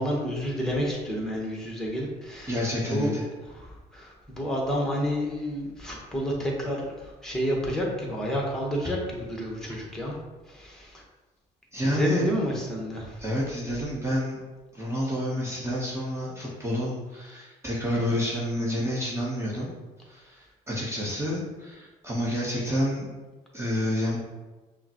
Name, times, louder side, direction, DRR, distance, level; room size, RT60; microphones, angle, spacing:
voice 1, 0.0-2.6 2.8-3.2 3.6-10.1 10.5-11.0 11.8-13.2, equal, 5° left, -2 dB, 1.3 m, -30 dB
voice 2, 2.5-3.2 11.7-12.3 13.2-14.4 14.7-19.7 20.0-23.1 23.5-24.2, equal, 15° right, -6 dB, 1.1 m, -29 dB
5.6 x 2.2 x 3.0 m, 1.2 s
supercardioid pair, 70°, 18 cm